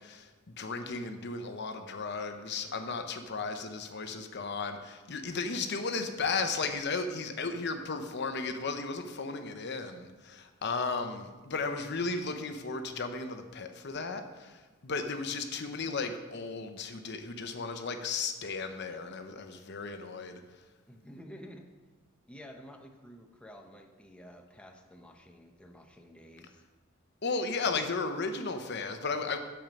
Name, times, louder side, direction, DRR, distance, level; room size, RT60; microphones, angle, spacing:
voice 1, 0.0-20.4 27.2-29.4, left 4 dB, 55° left, 7 dB, 0.8 m, -35 dB
voice 2, 2.3-2.9 20.9-21.7 22.2-26.6, equal, 5° left, 3 dB, 0.7 m, -51 dB
9.0 x 7.2 x 5.3 m, 1.2 s
head